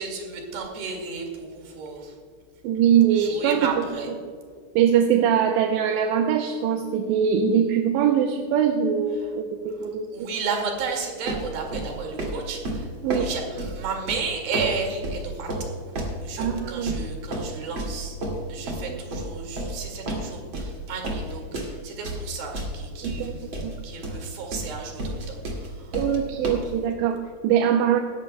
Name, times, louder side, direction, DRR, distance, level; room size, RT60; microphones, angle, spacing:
voice 1, 0.0-2.2 3.1-4.1 9.2-9.3 10.1-15.5 15.9-18.2 18.5-23.5 23.8-26.0, right 5 dB, 60° right, 2 dB, 3.5 m, -33 dB
voice 2, 2.6-3.7 4.8-10.3 13.0-13.3 16.4-16.9 18.9-19.0 23.0-23.3 23.6-23.7 25.9-28.0, right 8 dB, 80° right, 4 dB, 2.8 m, -22 dB
sound 1, 11.3-26.7, right 1 dB, 40° right, 1.9 m, -31 dB
17.5 x 13.5 x 2.2 m, 2.1 s
omnidirectional pair, 5.4 m